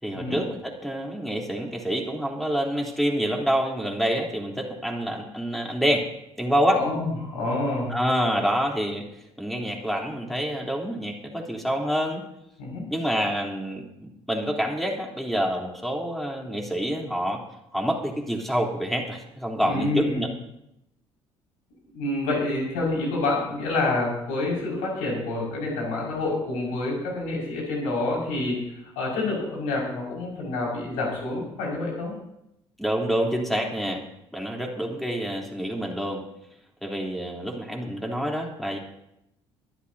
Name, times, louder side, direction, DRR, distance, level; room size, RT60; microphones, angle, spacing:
voice 1, 0.0-6.1 6.4-6.8 7.9-9.0 9.4-12.2 12.9-17.4 17.7-20.3 32.8-34.0 34.3-36.2 36.8-38.8, equal, ahead, 0 dB, 3.3 m, -27 dB
voice 2, 6.7-8.0 12.6-12.9 19.6-20.3 21.9-32.2, left 2 dB, 65° left, -3 dB, 5.6 m, -28 dB
23.0 x 12.0 x 2.8 m, 0.81 s
figure-of-eight pair, 50°, 14 cm